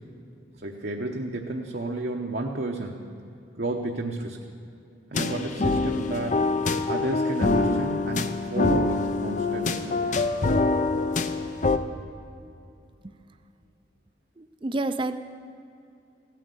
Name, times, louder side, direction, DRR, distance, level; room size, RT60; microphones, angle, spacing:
voice 1, 0.6-3.0 3.6-4.4 5.1-6.4 6.9-10.3, right 2 dB, 60° right, 0 dB, 0.9 m, -31 dB
sound 1, 5.1-11.8, left 3 dB, 40° left, 0.6 m, -25 dB
voice 2, 14.4-15.2, right 2 dB, 25° right, 10 dB, 0.5 m, -29 dB
16.5 x 9.3 x 6.9 m, 2.6 s
head